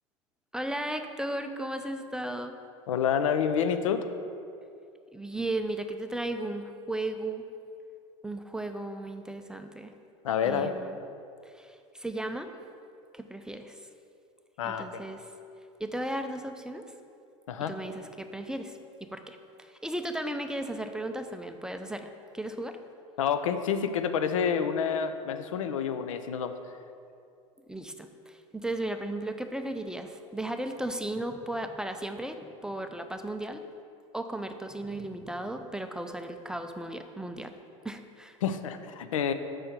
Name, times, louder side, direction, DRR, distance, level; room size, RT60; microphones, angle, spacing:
voice 1, 0.5-2.6 5.1-7.5 8.2-9.9 10.4-11.0 11.4-12.5 13.1-13.8 14.6-15.3 15.8-16.8 17.7-22.8 27.7-33.6 34.1-37.5 37.8-38.4, right 1 dB, 5° right, 7 dB, 0.4 m, -35 dB
voice 2, 2.9-4.0 10.2-10.7 14.6-15.0 17.5-17.7 23.2-26.5 38.4-39.3, left 7 dB, 80° left, 9 dB, 0.5 m, -28 dB
6.3 x 4.4 x 6.6 m, 2.5 s
hypercardioid pair, 90°, 17 cm